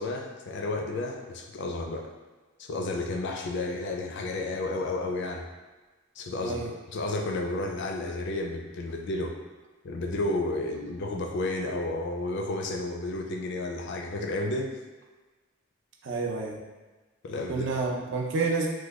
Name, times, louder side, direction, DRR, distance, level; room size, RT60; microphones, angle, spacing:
voice 1, 0.0-2.1 2.6-5.5 6.2-9.3 9.8-14.7 17.2-17.7, left 2 dB, 60° left, 2 dB, 0.4 m, -32 dB
voice 2, 6.4-6.7 16.0-16.6 17.5-18.7, right 4 dB, 65° right, 0 dB, 0.5 m, -29 dB
3.0 x 2.2 x 3.4 m, 1.3 s
head